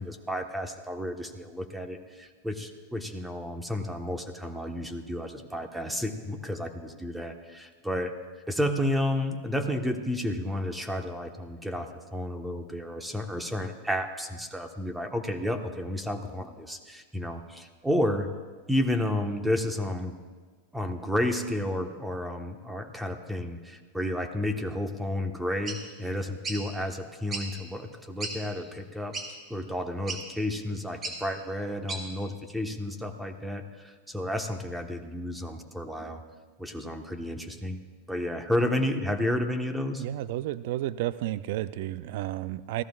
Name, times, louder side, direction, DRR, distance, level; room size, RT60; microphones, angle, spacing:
voice 1, 0.0-8.1 8.5-18.3 18.7-20.1 20.7-29.2 29.5-36.2 36.6-37.8 38.1-40.0, left 1 dB, 5° right, 5 dB, 1.3 m, -31 dB
sound 1, 25.7-25.8 26.4-26.6 27.3-27.5 27.9-28.0 28.2-28.3 29.1-29.3 30.1-30.2 31.0-31.2 31.9-32.0, right 3 dB, 25° right, 2.1 m, -34 dB
voice 2, 40.0-42.8, right 14 dB, 65° right, 16 dB, 0.4 m, -32 dB
25.5 x 14.5 x 2.4 m, 1.4 s
hypercardioid pair, 105°, 0 cm